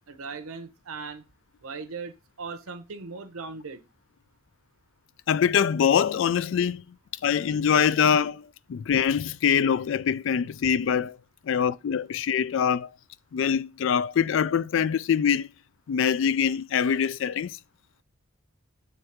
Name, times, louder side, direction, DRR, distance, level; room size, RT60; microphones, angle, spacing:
voice 1, 0.1-1.2 1.6-3.8 7.9-8.0, right 4 dB, 85° right, 0.7 m, -38 dB
voice 2, 5.3-6.8 7.2-11.2 11.4-12.9 13.3-15.5 15.9-17.6, left 7 dB, 65° left, 0.3 m, -24 dB
7.2 x 3.3 x 4.5 m
head